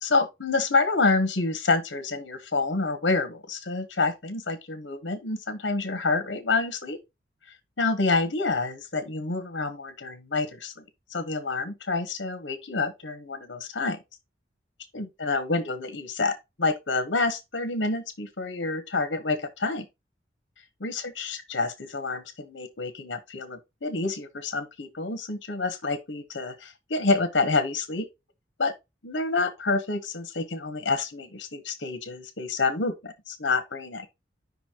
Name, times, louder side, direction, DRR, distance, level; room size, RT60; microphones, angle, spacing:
voice 1, 0.0-7.0 7.8-10.8 11.1-14.0 14.9-19.8 20.8-28.1 28.6-28.7 29.0-34.1, left 3 dB, 80° left, 1.1 m, -28 dB
5.4 x 3.9 x 4.5 m
head